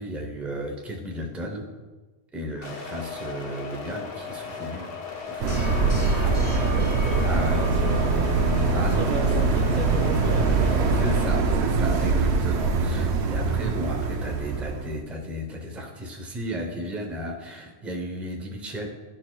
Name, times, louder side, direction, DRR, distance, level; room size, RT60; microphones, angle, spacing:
voice 1, 0.0-1.7 2.3-4.9 5.2-5.7 7.2-7.6 8.7-9.6 11.0-18.9, equal, ahead, 0.6 m, -34 dB
sound 1, 2.6-11.3, left 5 dB, 75° left, 1.1 m, -36 dB
sound 2, 5.4-15.0, right 4 dB, 85° right, 0.9 m, -23 dB
sound 3, 5.5-12.4, right 1 dB, 35° left, 1.2 m, -35 dB
voice 2, 6.2-10.9, right 4 dB, 55° right, 0.7 m, -35 dB
11.5 x 4.4 x 2.3 m
omnidirectional pair, 1.1 m